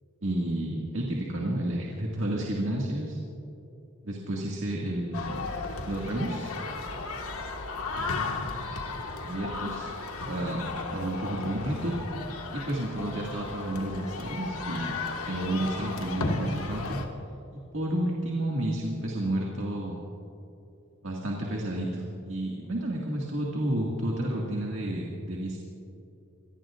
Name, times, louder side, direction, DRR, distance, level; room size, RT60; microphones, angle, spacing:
voice 1, 0.2-3.2 4.0-5.5 5.9-6.5 9.2-9.9 10.3-11.9 12.7-17.0 17.7-20.0 21.0-25.6, right 1 dB, 60° right, -2 dB, 2.0 m, -31 dB
sound 1, 5.1-17.1, left 3 dB, 90° left, 1.7 m, -35 dB
26.5 x 18.5 x 2.5 m, 2.8 s
head